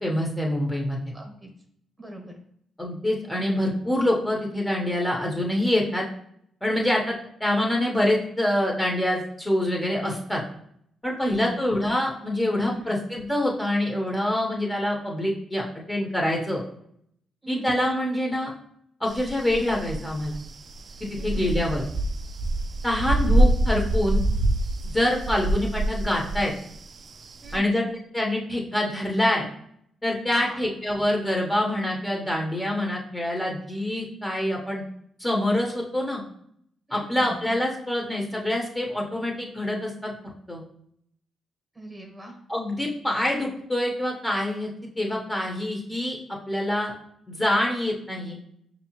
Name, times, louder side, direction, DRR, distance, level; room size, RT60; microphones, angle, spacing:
voice 1, 0.0-1.0 2.8-6.0 6.6-10.4 11.0-16.6 17.5-18.5 19.0-20.4 21.0-21.8 22.8-24.3 24.8-26.5 27.5-27.9 28.1-29.5 30.0-34.8 35.2-36.2 36.9-40.1 40.5-40.6 42.5-44.7 45.0-46.2 46.5-46.9 47.3-48.4, left 1 dB, 15° left, -2 dB, 1.0 m, -25 dB
voice 2, 1.1-1.5 2.0-2.3 11.2-11.6 12.7-13.0 17.4-17.7 21.1-21.4 27.4-27.8 30.3-30.6 36.9-37.4 41.7-42.4, right 1 dB, 15° right, 2 dB, 1.2 m, -40 dB
sound 1, 19.1-27.6, right 1 dB, 50° right, 0.3 m, -25 dB
5.0 x 2.8 x 3.0 m, 0.69 s
supercardioid pair, 65°, 0 cm